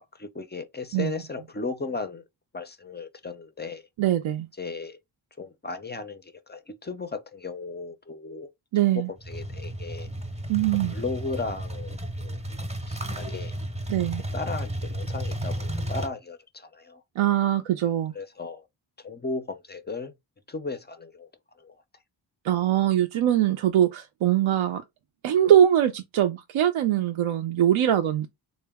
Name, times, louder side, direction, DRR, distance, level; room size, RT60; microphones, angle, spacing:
voice 1, 0.1-2.2 2.5-3.8 4.6-5.0 5.4-8.5 8.9-10.1 10.9-12.4 12.9-13.5 14.3-17.0 18.1-18.6 19.0-20.1 20.5-21.3 21.6-21.8, left 3 dB, 25° left, 0.4 m, -35 dB
voice 2, 4.0-4.5 8.7-9.1 10.5-11.0 13.9-14.2 17.2-18.1 22.4-24.8 25.2-28.3, right 11 dB, 80° right, 0.5 m, -22 dB
sound 1, 9.2-16.1, right 1 dB, 15° right, 0.6 m, -33 dB
3.8 x 2.1 x 3.4 m
wide cardioid pair, 150°, 48 cm